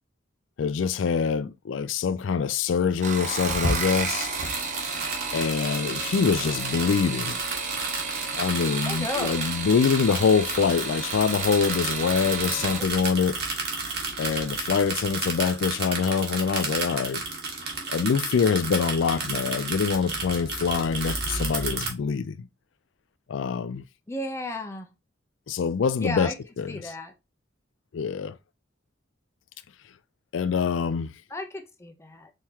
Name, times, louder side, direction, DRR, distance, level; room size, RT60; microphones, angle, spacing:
voice 1, 0.6-4.3 5.3-7.4 8.3-13.4 14.2-17.2 17.9-22.5 23.3-23.8 25.5-26.9 27.9-28.4 30.3-31.1, left 6 dB, 90° left, 0.4 m, -25 dB
sound 1, 2.9-12.9 14.1-14.6 15.0-15.4 15.7-15.8, right 4 dB, 40° right, 0.9 m, -33 dB
sound 2, 3.4-21.9, right 3 dB, 60° right, 1.5 m, -32 dB
voice 2, 8.8-9.5 12.8-12.9 24.1-24.9 26.0-26.3 26.7-27.1 31.3-32.3, left 2 dB, 15° left, 0.7 m, -34 dB
4.4 x 3.8 x 2.8 m
head